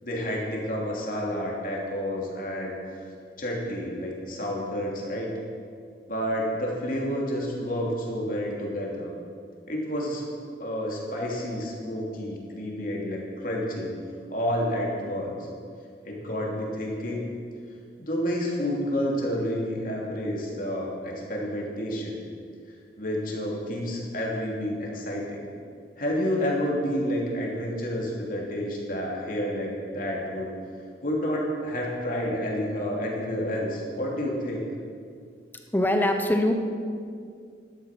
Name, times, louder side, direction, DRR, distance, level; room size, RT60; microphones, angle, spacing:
voice 1, 0.0-2.8 3.4-5.3 6.1-9.1 9.7-10.2 10.6-13.9 14.3-15.5 16.0-17.3 18.0-22.2 23.0-25.4 26.0-30.5 31.0-34.6, equal, 50° left, -2 dB, 2.9 m, -29 dB
voice 2, 35.7-36.5, left 1 dB, 10° left, 5 dB, 0.9 m, -22 dB
12.0 x 12.0 x 6.1 m, 2.3 s
head